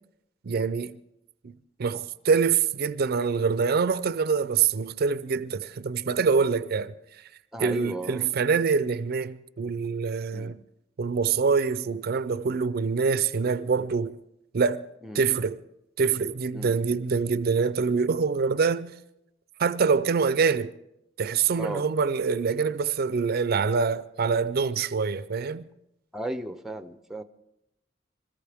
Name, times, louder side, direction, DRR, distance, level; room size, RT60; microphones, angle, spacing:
voice 1, 0.4-1.0 1.4-6.9 7.6-10.6 11.0-14.2 14.5-14.8 15.1-15.6 16.0-18.9 19.6-20.7 21.2-25.6, right 5 dB, 55° right, 0.4 m, -25 dB
voice 2, 7.5-8.3 10.3-10.6 15.0-15.3 16.5-16.8 21.6-21.9 26.1-27.2, right 1 dB, ahead, 0.6 m, -35 dB
25.5 x 14.0 x 3.5 m
head